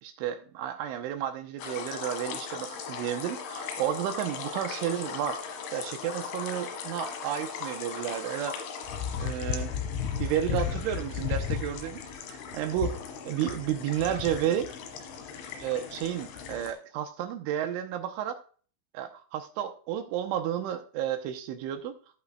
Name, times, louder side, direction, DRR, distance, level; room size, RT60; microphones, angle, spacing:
voice 1, 0.0-5.4 5.7-8.6 9.2-9.7 10.2-12.0 12.3-13.0 13.2-14.7 15.6-18.4 18.9-21.9, right 10 dB, 80° right, 7 dB, 3.1 m, -32 dB
sound 1, 1.6-16.7, left 7 dB, 75° left, 3.8 m, -36 dB
16.5 x 5.6 x 2.3 m, 0.42 s
omnidirectional pair, 5.8 m